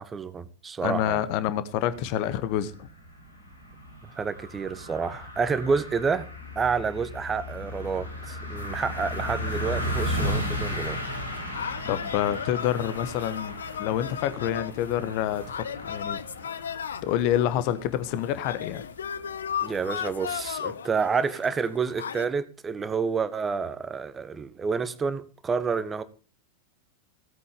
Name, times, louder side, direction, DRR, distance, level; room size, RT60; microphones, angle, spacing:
voice 1, 0.0-1.2 4.2-6.3 6.5-11.2 19.6-26.0, right 5 dB, 20° right, 1.3 m, -29 dB
voice 2, 0.8-2.7 11.8-13.5 13.8-15.4 15.8-16.2 17.0-18.8, left 11 dB, 45° left, 1.2 m, -27 dB
sound 1, 1.9-20.5, equal, 80° left, 5.7 m, -36 dB
sound 2, 8.6-22.3, left 8 dB, 65° left, 0.8 m, -37 dB
17.0 x 8.4 x 5.2 m
figure-of-eight pair, 90°, 0 cm